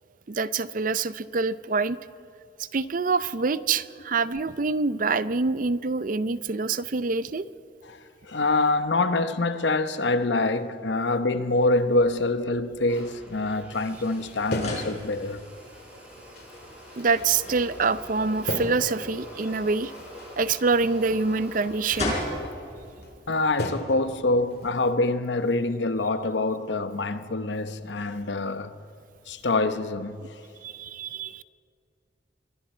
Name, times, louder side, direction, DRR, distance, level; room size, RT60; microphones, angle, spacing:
voice 1, 0.3-2.0 2.7-7.4 17.0-19.9 20.4-22.2 30.6-31.4, right 4 dB, 50° right, 0.6 m, -26 dB
voice 2, 8.2-15.4 23.3-28.7 29.3-30.2, left 2 dB, 85° left, 1.0 m, -25 dB
sound 1, 11.8-24.7, left 1 dB, 40° left, 5.7 m, -40 dB
sound 2, 12.9-23.1, left 1 dB, 10° right, 6.7 m, -46 dB
sound 3, 14.5-15.9 16.3-18.1 18.5-20.4 20.7-22.0 22.4-22.5 23.0-23.1 23.6-24.1 24.5-24.9 25.3-25.8, left 1 dB, 65° left, 2.1 m, -37 dB
26.5 x 22.5 x 4.4 m
head